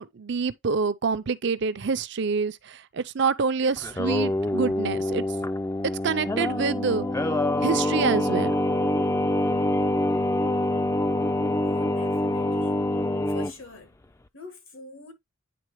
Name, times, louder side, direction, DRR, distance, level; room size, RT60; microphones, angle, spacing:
voice 1, 0.0-5.2 6.0-7.1 7.6-8.5, right 5 dB, 60° right, 0.5 m, -26 dB
Singing, 3.8-13.5, left 1 dB, 15° left, 0.3 m, -25 dB
voice 2, 11.6-12.8 13.3-13.9 14.3-15.1, left 3 dB, 85° left, 2.1 m, -43 dB
9.4 x 3.8 x 3.0 m
head